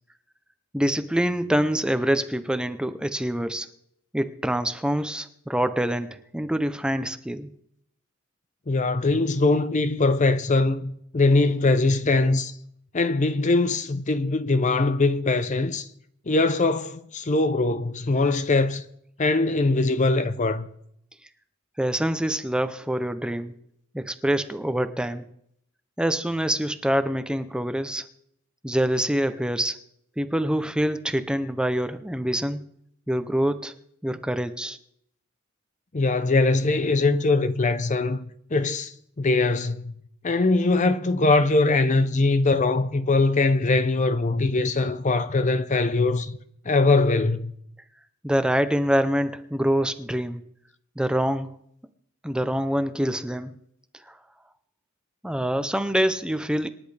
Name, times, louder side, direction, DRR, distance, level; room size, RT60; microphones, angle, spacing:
voice 1, 0.7-3.7 4.1-7.5 21.8-23.5 23.9-25.2 26.0-28.0 28.6-29.8 30.2-32.6 33.1-33.7 34.0-34.8 48.2-50.4 51.0-51.5 52.2-53.5 54.1-54.2 55.2-56.7, right 1 dB, 5° right, 0.6 m, -25 dB
voice 2, 8.7-12.5 12.9-15.9 16.3-18.8 19.2-20.7 35.9-38.9 39.2-39.9 40.2-46.4 46.7-47.5, left 3 dB, 35° left, 0.6 m, -22 dB
27.5 x 10.5 x 3.4 m
head